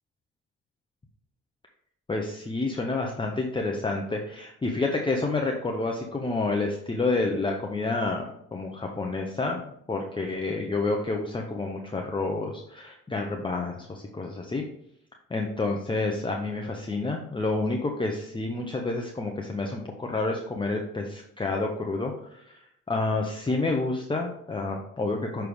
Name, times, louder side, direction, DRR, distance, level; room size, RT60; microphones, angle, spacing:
voice 1, 2.1-8.2 8.5-9.6 9.9-14.6 15.3-22.6 22.9-25.5, left 3 dB, 15° left, 1 dB, 0.8 m, -29 dB
6.5 x 4.5 x 3.5 m, 0.73 s
cardioid pair, 90°, 30 cm